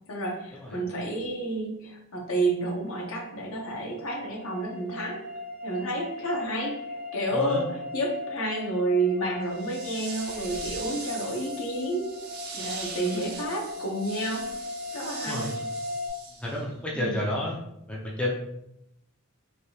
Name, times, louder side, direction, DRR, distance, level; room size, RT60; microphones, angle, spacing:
voice 1, 0.1-5.2 5.6-12.1 12.5-14.5 14.9-15.5 16.9-17.2, right 1 dB, 65° left, 0 dB, 0.7 m, -30 dB
sound 1, 2.9-16.1, left 2 dB, 70° right, 0.9 m, -38 dB
voice 2, 7.3-7.6 15.3-15.5 16.4-17.6 17.9-18.3, left 1 dB, 5° left, -4 dB, 0.4 m, -30 dB
sound 2, 9.5-16.7, right 4 dB, 45° right, 0.5 m, -41 dB
3.2 x 2.6 x 2.7 m, 0.81 s
head